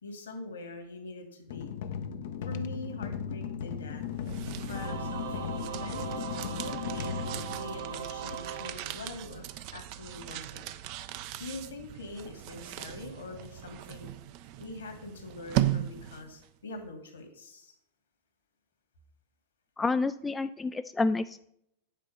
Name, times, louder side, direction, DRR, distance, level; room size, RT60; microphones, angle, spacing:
voice 1, 0.0-1.7 2.5-4.0 4.4-6.1 6.6-9.4 9.7-10.6 11.4-14.1 14.6-17.7, left 3 dB, 70° left, 5 dB, 2.1 m, -43 dB
sound 1, 1.5-8.3, left 7 dB, 55° left, 0.6 m, -37 dB
sound 2, 3.9-16.5, right 14 dB, 45° right, 0.5 m, -38 dB
Singing / Musical instrument, 4.7-9.5, right 7 dB, 65° right, 1.0 m, -39 dB
voice 2, 19.8-21.4, left 3 dB, 10° left, 11 dB, 0.3 m, -29 dB
9.0 x 4.5 x 6.6 m, 0.72 s
figure-of-eight pair, 90°, 0 cm